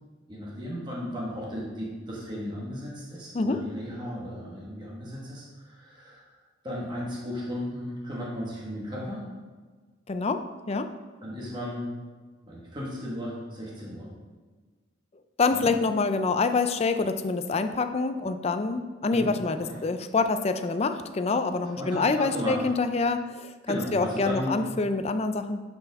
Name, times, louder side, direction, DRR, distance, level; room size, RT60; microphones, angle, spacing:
voice 1, 0.3-6.4 6.6-9.2 11.2-11.9 12.4-14.1 15.5-15.8 19.1-19.3 19.6-19.9 21.7-22.7 23.7-24.6, equal, 25° right, -5 dB, 1.6 m, -35 dB
voice 2, 10.1-10.9 15.4-25.6, left 3 dB, 35° left, 9 dB, 0.4 m, -26 dB
10.0 x 5.3 x 3.5 m, 1.4 s
head